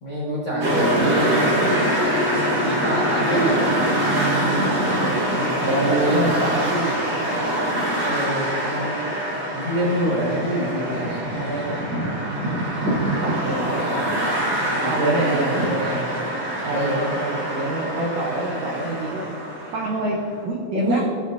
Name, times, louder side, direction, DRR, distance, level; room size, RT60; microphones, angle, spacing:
voice 1, 0.0-1.5 2.6-4.0 4.7-6.4 8.1-9.0 9.5-11.2 14.8-16.1 16.7-17.0 20.7-21.0, right 1 dB, 80° left, -7 dB, 0.6 m, -26 dB
sound 1, 0.6-20.2, right 1 dB, 55° right, 1.2 m, -24 dB
voice 2, 5.6-7.0 11.3-11.8 12.7-13.8 14.7-15.7 16.6-19.3 19.7-21.0, right 2 dB, 90° right, -1 dB, 1.4 m, -26 dB
15.5 x 6.9 x 2.6 m, 2.5 s
omnidirectional pair, 4.1 m